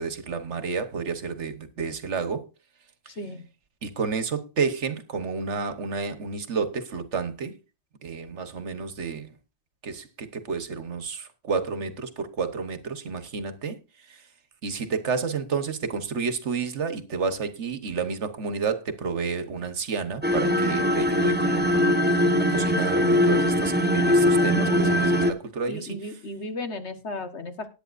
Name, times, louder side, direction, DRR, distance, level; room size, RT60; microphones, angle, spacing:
voice 1, 0.0-2.5 3.8-7.5 8.0-9.3 9.8-13.8 14.1-14.2 14.6-26.0, right 5 dB, 80° right, 1.5 m, -30 dB
sound 1, 20.2-25.3, left 1 dB, 10° right, 1.1 m, -21 dB
voice 2, 24.5-25.1 25.7-27.7, left 2 dB, 75° left, 1.7 m, -35 dB
19.0 x 9.0 x 2.6 m
omnidirectional pair, 1.2 m